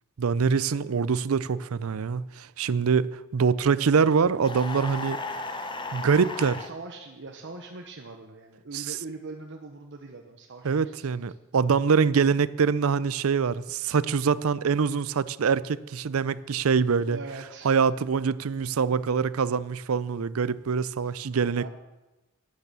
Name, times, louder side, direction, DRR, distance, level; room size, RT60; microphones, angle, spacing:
voice 1, 0.2-5.2 5.9-6.6 8.7-8.8 10.6-17.2 17.6-21.7, right 5 dB, 80° right, 0.5 m, -24 dB
sound 1, 4.4-6.7, left 3 dB, 25° left, 1.0 m, -35 dB
voice 2, 6.4-11.1 17.1-17.7 18.9-19.1 21.4-21.7, right 3 dB, 60° right, 1.0 m, -42 dB
12.0 x 9.7 x 6.8 m
head